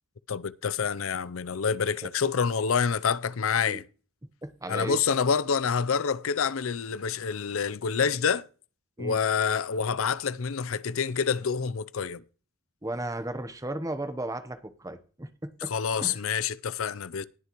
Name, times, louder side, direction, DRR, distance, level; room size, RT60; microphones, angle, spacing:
voice 1, 0.3-3.8 4.7-8.4 9.0-12.2 15.7-17.2, left 6 dB, 80° left, 0.6 m, -27 dB
voice 2, 4.4-5.0 9.0-9.2 12.8-15.7 16.0-16.2, right 1 dB, 15° right, 0.9 m, -35 dB
20.0 x 6.6 x 3.1 m
head